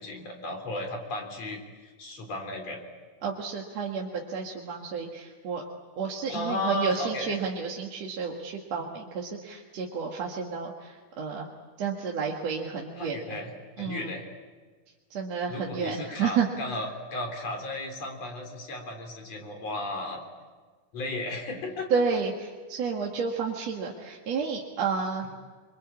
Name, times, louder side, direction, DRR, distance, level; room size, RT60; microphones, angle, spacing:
voice 1, 0.0-2.8 6.3-7.3 13.0-13.5 13.8-14.3 15.5-20.2 20.9-21.9, left 2 dB, 55° left, 3 dB, 4.8 m, -34 dB
voice 2, 3.2-5.6 6.0-11.5 11.8-13.2 13.8-14.1 15.1-16.5 21.9-25.3, right 5 dB, 60° right, -1 dB, 2.8 m, -31 dB
26.5 x 24.0 x 8.6 m, 1.4 s
omnidirectional pair, 3.6 m